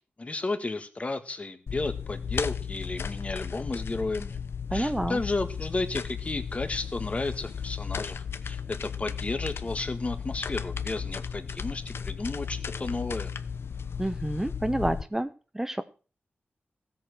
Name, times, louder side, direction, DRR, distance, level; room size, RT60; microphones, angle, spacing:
voice 1, 0.2-4.4 4.7-13.3, left 3 dB, 35° left, 10 dB, 1.5 m, -33 dB
sound 1, 1.7-15.0, left 6 dB, 75° left, 0.9 m, -35 dB
voice 2, 4.7-5.2 14.0-15.3 15.5-15.8, right 1 dB, 10° right, 12 dB, 0.7 m, -28 dB
16.0 x 7.9 x 6.2 m, 0.37 s
wide cardioid pair, 130°, 4 cm